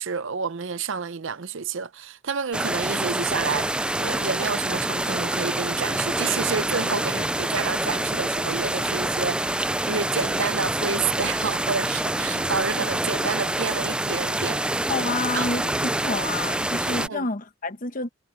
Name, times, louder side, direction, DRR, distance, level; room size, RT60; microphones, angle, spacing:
voice 1, 0.0-3.7 4.0-14.6 15.3-15.4 17.0-17.3, right 5 dB, 60° right, 0.7 m, -29 dB
sound 1, 2.5-17.1, right 1 dB, 5° right, 0.3 m, -26 dB
voice 2, 14.9-18.1, left 3 dB, 40° left, 1.1 m, -29 dB
head